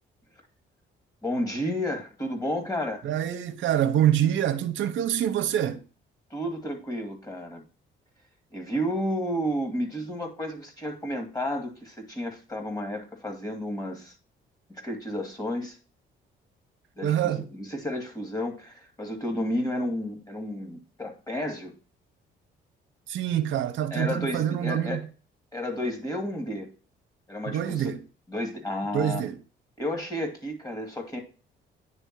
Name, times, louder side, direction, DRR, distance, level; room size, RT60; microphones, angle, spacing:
voice 1, 1.2-3.0 6.3-7.6 8.5-14.1 14.8-15.8 17.0-21.7 23.9-25.0 25.5-26.7 27.3-27.9 28.3-29.3 29.8-31.2, equal, 20° left, 2.3 m, -31 dB
voice 2, 3.0-5.8 17.0-17.4 23.1-25.0 27.5-28.0 28.9-29.4, right 10 dB, 75° right, 0.8 m, -26 dB
9.7 x 3.4 x 4.6 m
cardioid pair, 90°, 20 cm